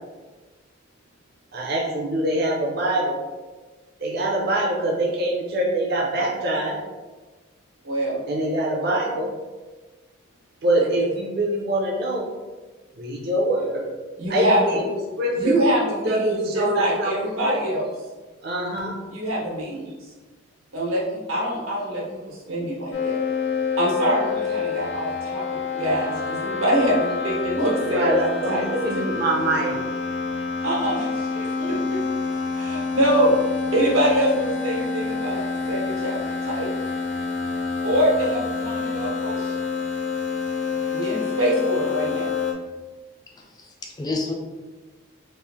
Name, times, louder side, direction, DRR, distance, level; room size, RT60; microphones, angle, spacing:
voice 1, 1.5-3.2 4.0-6.8 8.3-9.4 10.6-12.3 13.0-13.9 14.3-14.8 15.2-15.6 16.0-17.6 18.4-19.0 27.9-29.8, right 1 dB, 50° right, -1 dB, 0.5 m, -24 dB
voice 2, 7.8-8.2 10.8-10.9 14.2-14.8 15.4-17.9 19.1-19.9 20.7-23.2 23.8-29.0 30.6-32.0 32.5-35.4 35.7-36.8 37.8-39.6 40.9-42.3, equal, 90° right, -4 dB, 1.1 m, -24 dB
sound 1, 22.9-42.5, left 5 dB, 60° left, 0.6 m, -28 dB
voice 3, 43.3-44.3, left 3 dB, 20° left, 0 dB, 0.3 m, -30 dB
3.1 x 2.4 x 3.5 m, 1.3 s
head